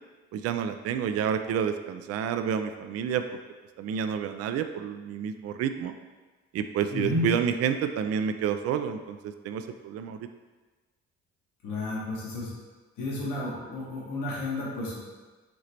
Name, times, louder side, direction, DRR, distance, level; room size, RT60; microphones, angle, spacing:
voice 1, 0.3-3.2 3.8-5.9 6.5-10.3, right 8 dB, 45° right, 8 dB, 0.4 m, -29 dB
voice 2, 6.9-7.2 11.6-12.5 13.0-15.0, left 2 dB, 60° left, -6 dB, 1.4 m, -32 dB
5.0 x 2.9 x 3.3 m, 1.3 s
hypercardioid pair, 45°, 36 cm